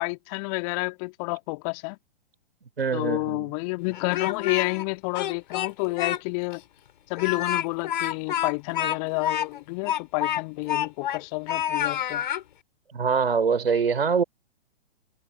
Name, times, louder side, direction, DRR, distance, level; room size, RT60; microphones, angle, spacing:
voice 1, 0.0-2.0 2.9-6.6 7.1-12.2, left 31 dB, 35° left, 3.7 m, -30 dB
voice 2, 2.8-3.5 12.9-14.2, right 5 dB, 70° right, 4.9 m, -24 dB
Speech, 3.9-4.8 5.1-6.2 6.5-6.6 7.1-11.2 11.5-12.4, left 11 dB, 50° left, 4.9 m, -28 dB
figure-of-eight pair, 115°, 31 cm